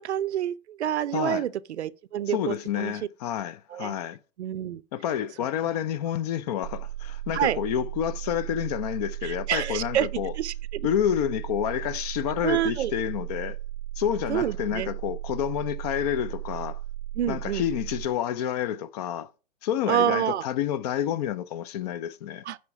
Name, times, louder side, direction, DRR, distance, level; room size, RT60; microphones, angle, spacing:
voice 1, 0.0-2.9 3.7-3.9 4.4-4.8 7.3-7.6 9.2-10.1 10.4-10.9 12.4-12.9 14.3-14.9 17.2-17.6 19.9-20.4 22.5-22.6, right 11 dB, 85° right, 0.6 m, -27 dB
voice 2, 1.1-1.4 2.3-4.2 4.9-10.3 10.8-13.6 14.0-16.8 17.3-19.3 19.6-22.4, left 10 dB, 40° left, 0.6 m, -29 dB
sound 1, 6.6-18.1, right 14 dB, 45° right, 0.5 m, -36 dB
9.3 x 4.9 x 5.9 m
hypercardioid pair, 140°, 33 cm